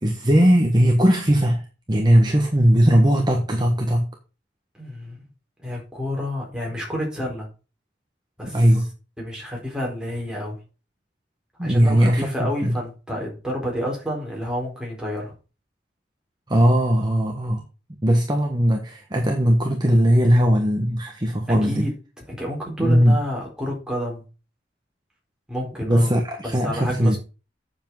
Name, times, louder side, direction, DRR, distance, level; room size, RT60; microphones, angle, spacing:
voice 1, 0.0-4.1 8.5-8.9 11.6-12.8 16.5-17.6 18.0-21.9 22.8-23.2 25.8-27.2, equal, 20° right, 1.4 m, -19 dB
voice 2, 4.7-5.3 5.6-7.5 8.4-8.6 9.2-10.6 11.6-15.3 21.5-21.9 22.3-24.2 25.5-26.1 26.4-27.2, equal, 5° right, 4.3 m, -29 dB
8.7 x 7.3 x 5.6 m
head